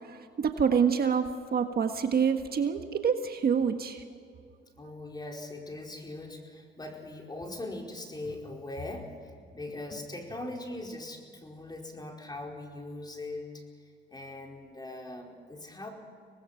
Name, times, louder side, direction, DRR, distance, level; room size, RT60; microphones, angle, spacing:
voice 1, 0.0-4.0, right 6 dB, 50° right, 6 dB, 1.6 m, -27 dB
voice 2, 4.8-9.1 9.5-13.6 14.1-15.9, left 2 dB, 20° left, 1 dB, 4.7 m, -40 dB
sound 1, 5.0-5.2 7.4-7.7 8.0-10.5, left 3 dB, 45° left, 3.0 m, -51 dB
25.0 x 19.5 x 5.9 m, 2.3 s
cardioid pair, 90°, 20 cm